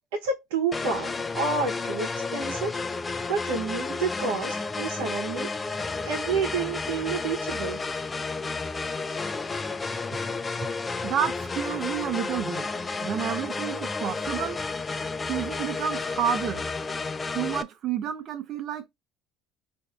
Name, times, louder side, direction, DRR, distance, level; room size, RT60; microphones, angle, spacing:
voice 1, 0.2-1.1 1.3-2.7 3.3-5.8 6.1-7.8, right 5 dB, 90° right, 0.9 m, -29 dB
sound 1, 0.7-17.6, left 4 dB, 25° left, 0.4 m, -32 dB
voice 2, 11.0-12.7 13.0-14.6 15.3-16.6 17.3-18.9, right 9 dB, 55° right, 0.7 m, -30 dB
4.2 x 2.6 x 2.4 m
supercardioid pair, 90°, 0 cm